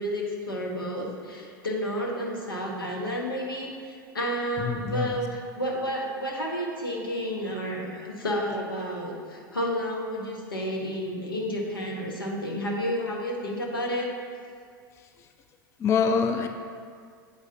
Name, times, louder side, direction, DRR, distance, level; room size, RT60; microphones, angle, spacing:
voice 1, 0.0-14.1, equal, 85° left, -1 dB, 1.1 m, -31 dB
voice 2, 4.6-5.1 15.8-16.5, left 6 dB, 25° left, 6 dB, 0.3 m, -25 dB
8.1 x 4.8 x 2.7 m, 2.1 s
hypercardioid pair, 90°, 11 cm